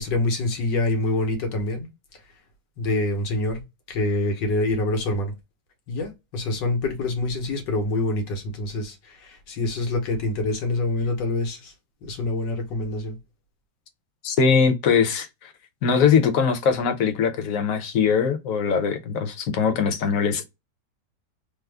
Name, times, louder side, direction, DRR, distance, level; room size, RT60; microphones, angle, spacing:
voice 1, 0.0-1.9 2.8-3.6 3.9-5.3 5.9-11.7 12.0-13.2, left 2 dB, 90° left, 1.7 m, -26 dB
voice 2, 14.2-15.5 15.8-20.4, left 6 dB, 60° left, 1.0 m, -21 dB
3.5 x 2.0 x 3.3 m
omnidirectional pair, 1.9 m